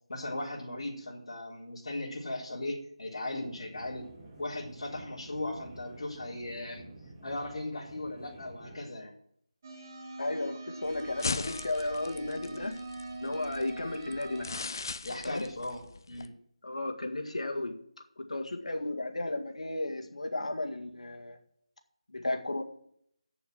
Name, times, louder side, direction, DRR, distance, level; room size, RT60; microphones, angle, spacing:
voice 1, 0.1-4.1 4.4-6.8 7.2-9.1 15.0-16.3, left 2 dB, 60° left, -4 dB, 3.8 m, -37 dB
sound 1, 3.4-8.8, right 2 dB, 10° right, 1.3 m, -51 dB
sound 2, 9.6-14.6, right 2 dB, 25° right, 1.4 m, -44 dB
voice 2, 10.2-12.8 13.2-14.5 15.2-15.4 16.6-17.7 18.2-21.4 22.1-22.6, left 2 dB, 85° left, 4 dB, 1.9 m, -34 dB
sound 3, 10.8-16.3, left 4 dB, 35° left, 0.5 m, -39 dB
8.0 x 7.0 x 7.8 m, 0.68 s
figure-of-eight pair, 175°, 3 cm